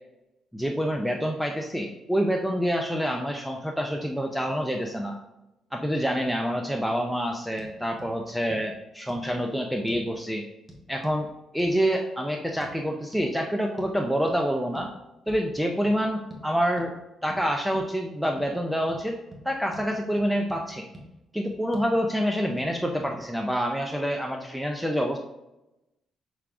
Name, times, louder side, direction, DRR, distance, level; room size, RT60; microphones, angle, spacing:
voice 1, 0.5-5.1 5.7-10.5 10.9-11.3 11.5-14.9 15.3-16.9 17.2-19.2 19.4-20.9 21.3-25.2, equal, ahead, 2 dB, 0.4 m, -27 dB
sound 1, 7.6-7.7 8.0-8.1 8.5-8.6 9.1-9.3 9.9-10.1 10.7-11.2 11.6-11.7 12.6-12.7 13.1-13.3 13.8-14.0 14.3-14.4 14.7-14.9 15.3-15.5 15.8-16.0 16.3-16.4 16.8-16.9 17.3-17.4 17.7-17.9 18.4-18.5 18.9-19.0 19.3-19.4 19.7-19.9 20.2-20.6 20.9-21.1 21.5-21.9 22.6-22.7 23.0-23.1, right 1 dB, 20° right, 1.0 m, -45 dB
5.8 x 3.4 x 2.4 m, 0.94 s
cardioid pair, 90°, 0 cm